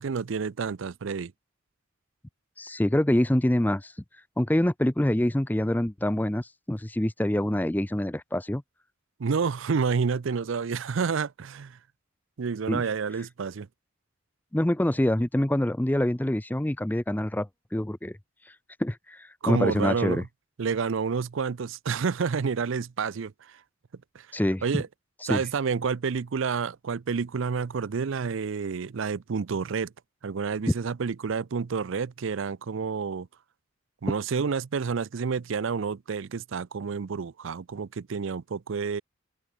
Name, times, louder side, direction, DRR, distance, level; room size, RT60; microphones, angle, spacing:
voice 1, 0.0-1.3 9.2-11.8 12.4-13.7 19.4-20.3 20.6-23.6 24.1-24.3 24.6-24.9 25.3-29.9 30.2-33.3 34.0-39.0, right 5 dB, 60° right, 0.5 m, -29 dB
voice 2, 2.6-3.9 4.4-8.6 12.7-12.8 14.5-18.2 18.8-20.2 24.3-24.8 25.3-25.4, left 1 dB, 10° left, 0.5 m, -26 dB
open air
head